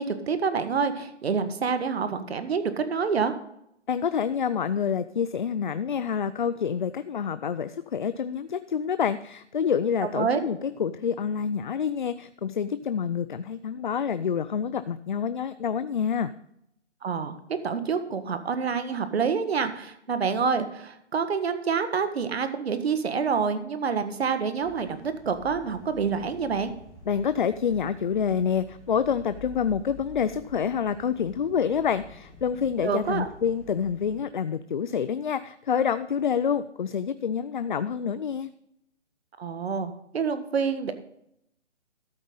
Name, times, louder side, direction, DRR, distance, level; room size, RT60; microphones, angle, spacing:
voice 1, 0.0-3.3 10.1-10.4 17.0-17.4 17.6-26.7 32.8-33.3 39.4-40.9, right 5 dB, 60° right, 9 dB, 1.6 m, -27 dB
voice 2, 3.9-16.3 27.1-38.5, left 7 dB, 45° left, 13 dB, 0.4 m, -27 dB
sound 1, 24.6-34.2, left 4 dB, 15° left, 4.2 m, -49 dB
13.5 x 8.1 x 3.9 m, 0.76 s
hypercardioid pair, 155°, 35 cm